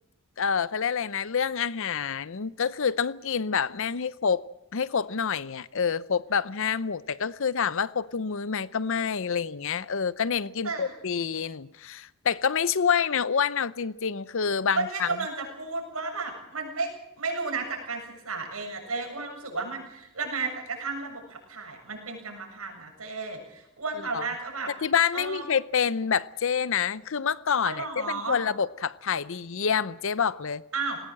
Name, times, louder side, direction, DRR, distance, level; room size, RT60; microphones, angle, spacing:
voice 1, 0.4-4.4 4.7-15.1 24.1-24.3 24.8-30.6, left 6 dB, 65° left, 17 dB, 0.7 m, -27 dB
voice 2, 14.8-16.9 17.2-24.7 25.1-25.4 27.6-28.4 30.7-31.0, right 3 dB, 80° right, 2 dB, 7.4 m, -33 dB
19.5 x 19.0 x 7.6 m, 0.85 s
head